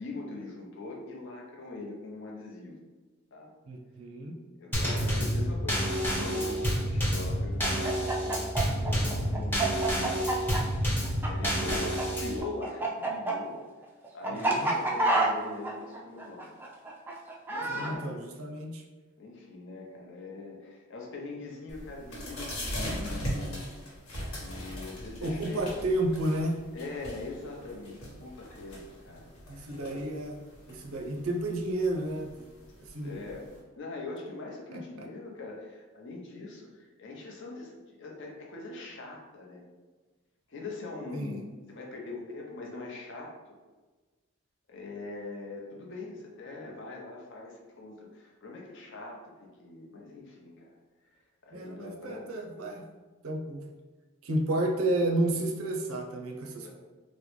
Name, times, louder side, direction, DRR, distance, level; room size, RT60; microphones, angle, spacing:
voice 1, 0.0-2.8 3.3-3.5 4.6-13.6 14.1-16.5 17.2-18.1 19.2-23.6 24.4-25.7 26.7-30.0 33.0-39.7 40.5-41.4 41.7-43.6 44.7-50.7 51.4-52.3 56.6-56.7, left 3 dB, 60° left, -1 dB, 0.7 m, -42 dB
voice 2, 3.7-4.4 14.3-14.7 17.7-18.8 25.2-26.6 29.5-30.4 30.7-32.5 32.8-33.2 34.7-35.1 41.1-41.4 51.5-52.8 53.2-53.7 54.2-56.7, right 1 dB, 80° right, 2 dB, 0.5 m, -31 dB
Drum kit / Snare drum / Bass drum, 4.7-12.4, equal, 10° left, 0.8 m, -29 dB
Chicken rooster, 7.6-12.0 12.3-17.9, right 2 dB, 10° right, 0.3 m, -29 dB
sound 1, 21.7-33.6, equal, 85° left, 1.1 m, -40 dB
3.7 x 2.1 x 3.1 m, 1.3 s
head